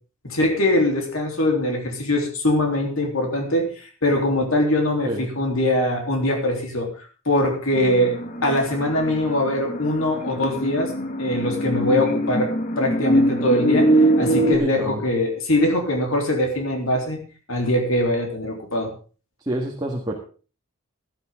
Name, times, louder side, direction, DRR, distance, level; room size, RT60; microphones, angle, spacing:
voice 1, 0.2-6.9 7.3-8.2 8.4-10.9 11.2-17.2 17.5-18.9, left 1 dB, 80° left, 2 dB, 3.5 m, -22 dB
sound 1, 7.7-14.6, right 1 dB, 35° left, 1.5 m, -22 dB
voice 2, 14.6-15.0 19.4-20.1, right 1 dB, 20° right, 0 dB, 1.8 m, -27 dB
17.0 x 11.5 x 3.7 m, 0.37 s
head